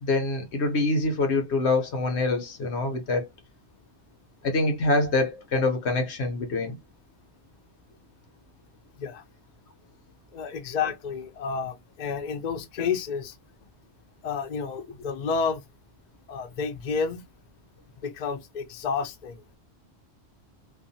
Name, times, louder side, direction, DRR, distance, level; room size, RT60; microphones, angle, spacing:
voice 1, 0.0-3.3 4.4-6.8, left 2 dB, 85° left, 1.0 m, -25 dB
voice 2, 10.3-13.3 14.2-15.6 16.3-17.2 18.0-19.4, left 5 dB, 50° left, 0.6 m, -30 dB
2.5 x 2.2 x 2.6 m
omnidirectional pair, 1.1 m